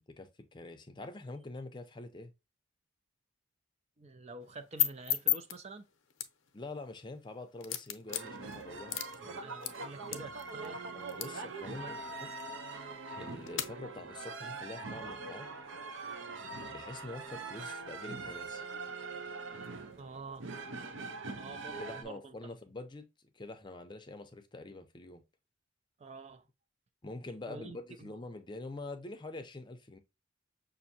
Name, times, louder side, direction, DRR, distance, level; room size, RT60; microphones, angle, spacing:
voice 1, 0.1-2.3 6.5-9.6 10.6-12.3 13.1-15.5 16.7-18.7 21.5-23.1 23.3-25.2 27.0-30.0, left 2 dB, 25° left, 0.5 m, -46 dB
voice 2, 4.0-5.9 9.2-10.8 11.2-11.4 11.7-12.0 20.0-20.5 21.4-22.3 26.0-26.4 27.5-28.1, right 3 dB, 35° right, 0.4 m, -48 dB
sound 1, 4.4-13.7, left 12 dB, 85° left, 0.6 m, -39 dB
sound 2, 8.1-22.0, right 3 dB, 75° right, 0.6 m, -43 dB
6.1 x 2.6 x 2.7 m
head